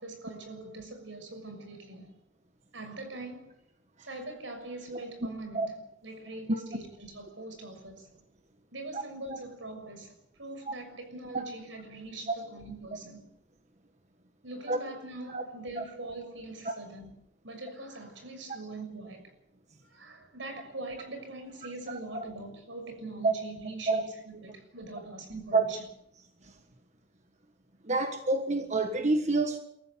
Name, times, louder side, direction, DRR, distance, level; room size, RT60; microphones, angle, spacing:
voice 1, 0.0-2.2 2.7-3.5 4.1-8.2 8.7-13.2 14.4-17.1 17.4-19.2 19.9-25.9, right 2 dB, 85° right, 6.6 m, -42 dB
voice 2, 27.9-29.6, right 3 dB, 40° right, 1.5 m, -27 dB
23.0 x 14.5 x 8.0 m
head